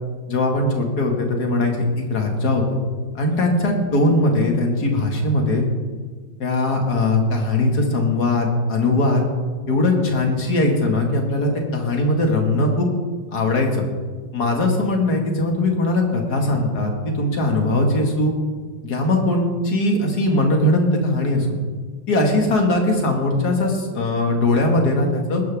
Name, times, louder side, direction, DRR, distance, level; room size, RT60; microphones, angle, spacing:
voice 1, 0.3-2.6 3.1-5.6 6.4-9.2 9.7-12.9 13.3-13.9 14.3-18.3 18.8-21.5 22.1-25.4, left 2 dB, 55° left, 2 dB, 2.5 m, -20 dB
20.0 x 11.5 x 3.6 m, 1.5 s
omnidirectional pair, 2.1 m